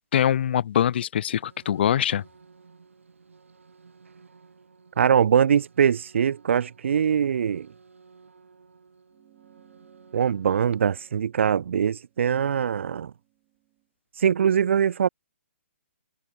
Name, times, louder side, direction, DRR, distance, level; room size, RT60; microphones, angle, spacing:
voice 1, 0.1-2.2, left 10 dB, 55° left, 0.4 m, -23 dB
sound 1, 1.2-11.1, right 5 dB, 85° right, 7.9 m, -55 dB
voice 2, 5.0-7.7 10.1-13.1 14.2-15.1, right 8 dB, 70° right, 0.4 m, -22 dB
sound 2, 9.1-13.9, right 29 dB, 30° right, 3.3 m, -63 dB
hypercardioid pair, 145°, 7 cm